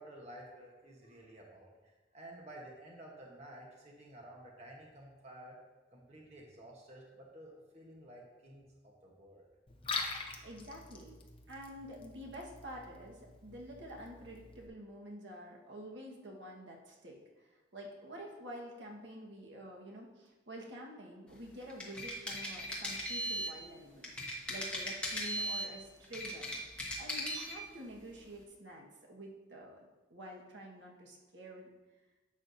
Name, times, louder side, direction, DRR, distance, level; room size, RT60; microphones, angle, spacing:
voice 1, 0.0-1.7 2.1-5.6 5.9-9.5, right 1 dB, 35° right, -2 dB, 1.1 m, -52 dB
Liquid, 9.7-14.7, left 4 dB, 30° left, 0.8 m, -44 dB
voice 2, 10.4-11.2 11.5-24.1 24.5-26.5 27.0-31.7, equal, 75° right, -1 dB, 1.4 m, -48 dB
sound 1, 21.6-23.6 24.0-25.7 26.0-27.6, equal, 5° left, 1.3 m, -38 dB
11.0 x 7.3 x 2.7 m, 1.2 s
head